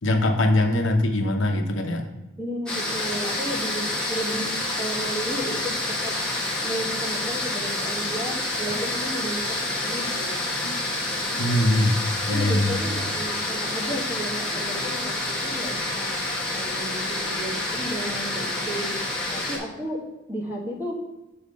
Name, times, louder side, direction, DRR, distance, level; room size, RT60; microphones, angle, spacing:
voice 1, 0.0-2.1 8.7-8.8 10.6-12.8, left 1 dB, 85° left, 4 dB, 0.9 m, -23 dB
voice 2, 2.4-6.1 6.6-10.4 12.3-16.1 16.5-19.0 19.3-20.0 20.3-21.0, equal, 10° right, -3 dB, 1.5 m, -33 dB
sound 1, 2.7-19.6, left 1 dB, 5° left, 1.4 m, -28 dB
7.3 x 4.2 x 5.2 m, 0.99 s
head